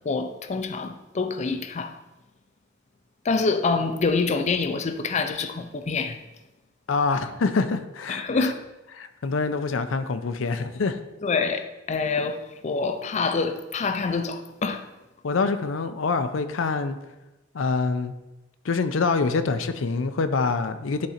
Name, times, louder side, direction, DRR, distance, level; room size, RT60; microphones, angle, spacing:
voice 1, 0.0-1.9 3.2-6.2 8.1-8.6 11.2-14.8, left 4 dB, 35° left, 8 dB, 0.4 m, -26 dB
voice 2, 6.9-8.5 9.0-11.0 15.2-17.0 17.5-18.1 18.6-21.1, left 4 dB, 85° left, 10 dB, 0.5 m, -25 dB
11.0 x 3.8 x 4.3 m, 1.0 s
head